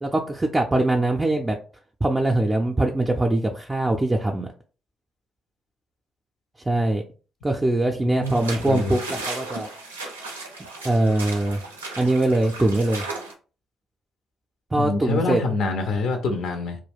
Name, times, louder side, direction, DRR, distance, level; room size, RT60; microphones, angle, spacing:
voice 1, 0.0-1.6 2.0-4.5 6.7-7.0 7.4-9.7 10.8-11.6 12.0-13.0 14.7-15.4, right 2 dB, 20° right, 2 dB, 0.4 m, -22 dB
voice 2, 7.9-9.0 14.8-16.8, left 3 dB, 60° left, 5 dB, 0.4 m, -26 dB
sound 1, 8.2-13.3, right 3 dB, 90° right, 0.4 m, -36 dB
2.3 x 2.1 x 3.3 m, 0.37 s
figure-of-eight pair, 45°, 0 cm